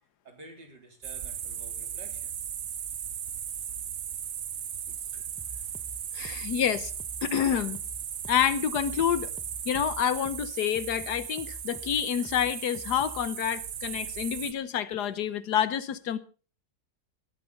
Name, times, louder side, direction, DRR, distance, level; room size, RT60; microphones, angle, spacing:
voice 1, 0.2-2.4, right 2 dB, 85° right, 4.2 m, -51 dB
sound 1, 1.0-14.5, right 8 dB, 55° right, 1.2 m, -37 dB
sound 2, 5.4-13.3, left 2 dB, 5° left, 0.8 m, -47 dB
voice 2, 6.1-6.9 7.2-7.8 8.3-9.3 9.6-16.2, left 9 dB, 70° left, 1.5 m, -28 dB
18.0 x 12.5 x 4.1 m
omnidirectional pair, 1.8 m